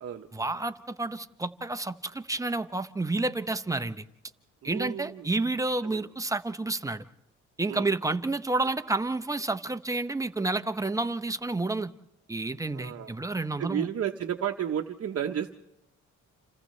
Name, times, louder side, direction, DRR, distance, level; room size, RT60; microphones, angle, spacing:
voice 1, 0.3-4.0 4.6-7.0 7.6-11.9 12.3-13.9, right 2 dB, 10° right, 10 dB, 0.8 m, -30 dB
voice 2, 4.6-5.3 5.8-6.0 7.7-7.9 12.7-13.1 13.6-15.6, right 9 dB, 50° right, 3 dB, 0.9 m, -32 dB
30.0 x 27.5 x 3.2 m, 0.89 s
cardioid pair, 90°, 30 cm